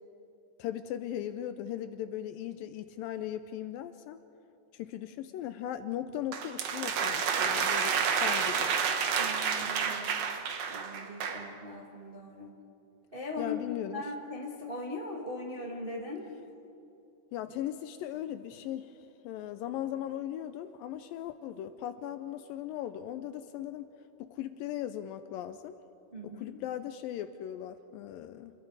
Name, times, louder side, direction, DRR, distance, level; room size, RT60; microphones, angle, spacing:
voice 1, 0.6-4.2 4.7-8.7 13.4-14.0 17.3-19.0 19.2-23.9 24.2-25.8 26.2-28.5, left 11 dB, 80° left, 10 dB, 2.2 m, -38 dB
sound 1, 6.3-11.5, right 6 dB, 60° right, 1.8 m, -30 dB
voice 2, 9.2-10.1 10.7-12.5 13.1-13.6 13.9-16.3 26.1-26.6, left 2 dB, 25° right, -2 dB, 1.1 m, -40 dB
28.0 x 22.0 x 4.8 m, 2.7 s
omnidirectional pair, 4.4 m